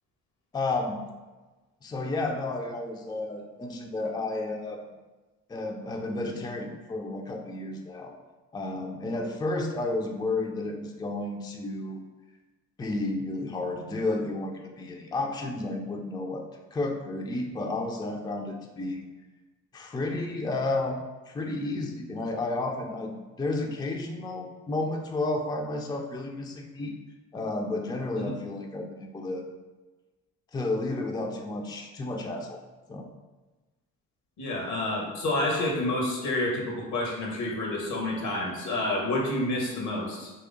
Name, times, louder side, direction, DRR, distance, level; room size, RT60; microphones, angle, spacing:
voice 1, 0.5-1.1 1.8-4.9 5.5-8.1 8.5-12.0 12.8-16.4 16.7-19.0 19.7-21.0 21.3-26.9 27.3-29.4 30.5-32.6 32.9-33.1, left 2 dB, 10° left, 2 dB, 0.5 m, -32 dB
voice 2, 34.4-40.3, left 1 dB, 70° left, -1 dB, 1.2 m, -29 dB
3.1 x 2.9 x 3.7 m, 1.2 s
hypercardioid pair, 50°, 41 cm